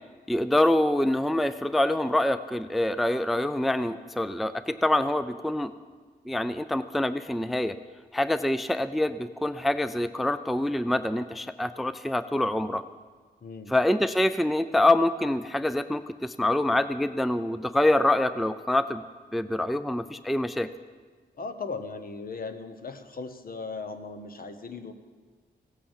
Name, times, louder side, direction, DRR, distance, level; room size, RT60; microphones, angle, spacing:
voice 1, 0.3-5.7 6.3-7.8 8.1-12.8 13.7-19.0 19.3-20.7, left 1 dB, ahead, 13 dB, 0.4 m, -25 dB
voice 2, 13.4-13.7 21.4-24.9, left 4 dB, 60° left, 8 dB, 1.0 m, -37 dB
16.0 x 8.6 x 7.3 m, 1.5 s
wide cardioid pair, 95°, 17 cm